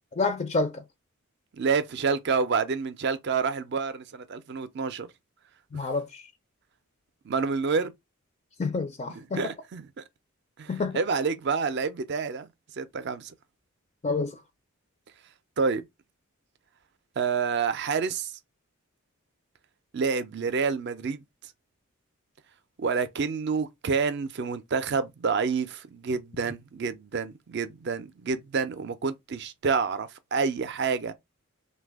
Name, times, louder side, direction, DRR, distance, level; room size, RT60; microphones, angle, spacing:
voice 1, 0.2-0.8 5.7-6.2 8.6-9.5 10.7-11.0 14.0-14.4, left 3 dB, 30° left, 0.3 m, -28 dB
voice 2, 1.6-5.1 7.2-7.9 9.1-10.0 10.6-10.7 10.9-12.5 12.8-13.3 15.6-15.8 17.2-18.4 19.9-21.2 22.8-31.1, right 5 dB, 50° right, 0.4 m, -28 dB
3.3 x 2.2 x 3.4 m
head